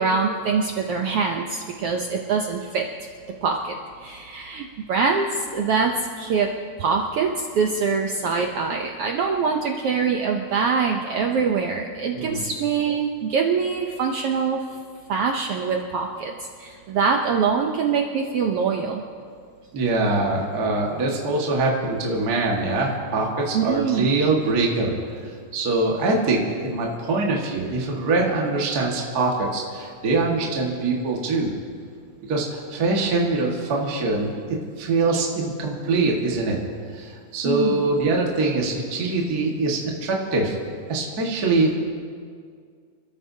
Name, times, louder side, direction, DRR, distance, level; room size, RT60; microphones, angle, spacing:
voice 1, 0.0-2.9 3.4-3.7 4.0-6.5 6.8-14.7 15.1-19.0 23.5-24.1 37.4-37.8, right 5 dB, 80° right, 2 dB, 1.3 m, -24 dB
voice 2, 19.7-24.9 25.2-31.5 32.3-36.6 36.9-40.6 40.9-41.8, right 3 dB, 35° right, -2 dB, 1.8 m, -23 dB
28.5 x 13.0 x 2.8 m, 2.1 s
omnidirectional pair, 3.6 m